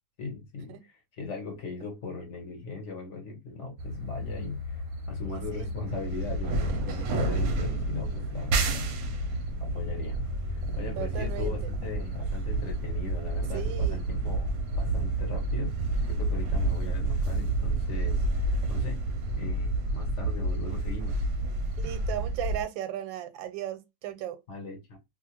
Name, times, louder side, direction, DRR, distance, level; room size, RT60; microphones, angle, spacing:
voice 1, 0.2-4.8 5.1-8.9 9.6-10.2 10.5-15.7 16.1-19.0 19.3-21.2 24.5-25.0, left 4 dB, 50° left, 0.9 m, -39 dB
sound 1, 3.8-22.6, right 2 dB, 65° right, 0.9 m, -30 dB
voice 2, 5.2-5.7 6.7-7.1 11.0-11.7 13.5-14.0 21.8-24.4, right 11 dB, 90° right, 1.3 m, -37 dB
2.8 x 2.5 x 2.8 m
omnidirectional pair, 2.0 m